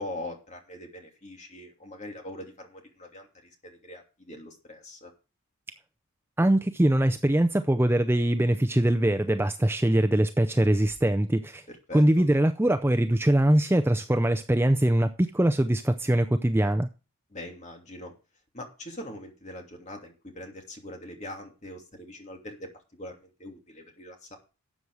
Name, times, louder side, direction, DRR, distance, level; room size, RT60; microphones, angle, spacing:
voice 1, 0.0-5.1 11.7-12.2 17.3-18.1 18.5-24.4, left 1 dB, 30° left, 2.8 m, -42 dB
voice 2, 6.4-11.7 11.9-16.9, right 1 dB, 10° right, 0.4 m, -22 dB
12.5 x 8.0 x 4.8 m
head